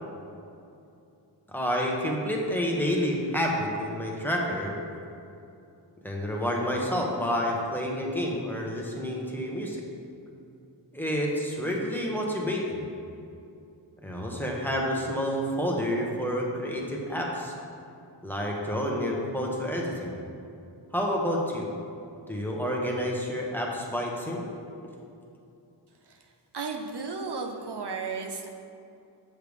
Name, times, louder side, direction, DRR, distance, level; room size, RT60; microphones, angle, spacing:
voice 1, 1.5-4.7 6.0-9.8 10.9-12.8 14.0-17.5 18.2-20.1 20.9-21.7 22.3-24.4, equal, 5° left, -2 dB, 1.2 m, -29 dB
voice 2, 26.5-28.5, right 4 dB, 65° right, 3 dB, 0.7 m, -34 dB
8.1 x 6.6 x 3.5 m, 2.7 s
wide cardioid pair, 85°, 43 cm